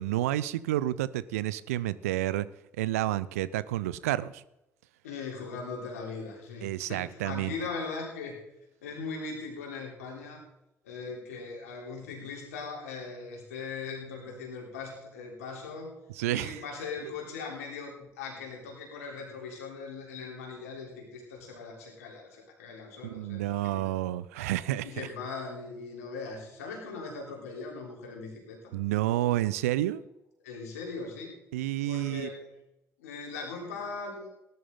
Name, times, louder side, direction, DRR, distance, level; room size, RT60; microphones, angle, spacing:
voice 1, 0.0-2.5 2.8-4.4 6.6-7.5 16.2-16.6 17.0-17.1 23.0-25.1 28.7-30.0 31.5-32.3, right 14 dB, 75° right, 17 dB, 0.5 m, -30 dB
voice 2, 5.0-8.4 8.8-10.4 10.8-23.9 24.8-28.7 30.4-31.3 31.9-32.5 33.0-34.3, left 4 dB, 75° left, 0 dB, 3.6 m, -40 dB
18.5 x 11.0 x 3.8 m, 0.89 s
figure-of-eight pair, 45°, 8 cm